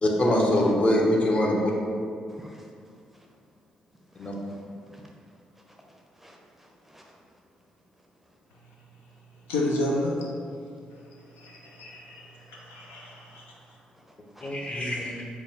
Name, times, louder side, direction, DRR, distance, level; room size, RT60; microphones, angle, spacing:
voice 1, 0.0-1.7 4.2-4.3 14.4-15.2, left 1 dB, 35° left, -1 dB, 0.8 m, -23 dB
voice 2, 2.3-2.6 4.1-5.0 6.2-7.0 14.3-14.5, equal, 5° right, 0 dB, 0.6 m, -51 dB
voice 3, 9.5-10.1 11.3-13.4, left 1 dB, 75° left, -2 dB, 0.4 m, -31 dB
4.6 x 2.2 x 3.3 m, 2.3 s
hypercardioid pair, 40°, 4 cm